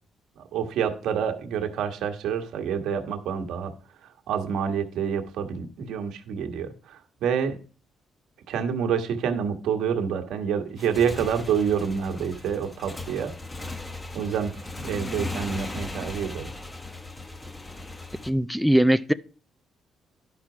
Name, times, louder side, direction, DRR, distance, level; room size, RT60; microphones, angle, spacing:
voice 1, 0.4-3.7 4.0-7.6 8.5-13.3 14.1-16.5, right 7 dB, 80° right, 1.4 m, -28 dB
Motorcycle / Engine, 10.7-18.3, left 2 dB, 20° left, 1.0 m, -37 dB
voice 2, 18.2-19.1, equal, ahead, 0.4 m, -20 dB
10.5 x 5.9 x 4.9 m
cardioid pair, 90°, 0 cm